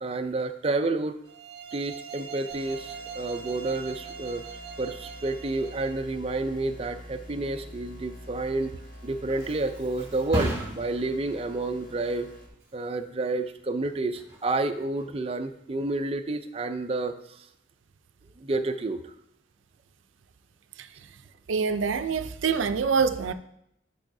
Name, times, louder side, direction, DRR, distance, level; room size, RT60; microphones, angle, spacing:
voice 1, 0.0-1.2 1.7-4.4 4.8-8.7 9.0-12.3 12.7-17.5 18.4-19.1, right 2 dB, 30° right, 7 dB, 0.4 m, -30 dB
sound 1, 1.2-6.0, right 6 dB, 55° right, 0.8 m, -41 dB
sound 2, 2.5-12.5, equal, 45° left, 1.7 m, -46 dB
Thump thud, 8.7-16.2 16.6-17.0, right 1 dB, 15° right, 2.7 m, -38 dB
voice 2, 21.5-23.3, right 5 dB, 90° right, 10 dB, 0.5 m, -25 dB
12.0 x 4.8 x 2.7 m, 0.77 s
head